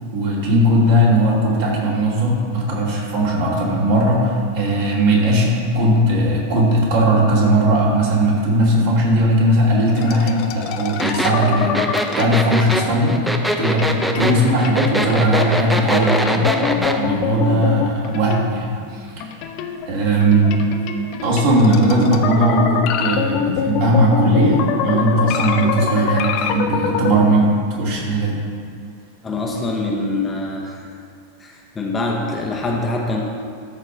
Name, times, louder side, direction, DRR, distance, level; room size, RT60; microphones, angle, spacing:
voice 1, 0.1-11.7 12.1-13.3 13.6-19.1 19.9-20.5 21.2-28.4, right 1 dB, 50° right, -4 dB, 2.8 m, -18 dB
sound 1, 10.0-13.0 13.5-18.8 19.2-27.1, left 7 dB, 40° left, 0.7 m, -25 dB
sound 2, 11.0-17.0, equal, 5° right, 0.7 m, -22 dB
voice 2, 29.2-30.9 31.4-33.2, left 2 dB, 15° left, -1 dB, 1.2 m, -24 dB
13.5 x 4.7 x 5.9 m, 2.3 s
figure-of-eight pair, 90°, 0 cm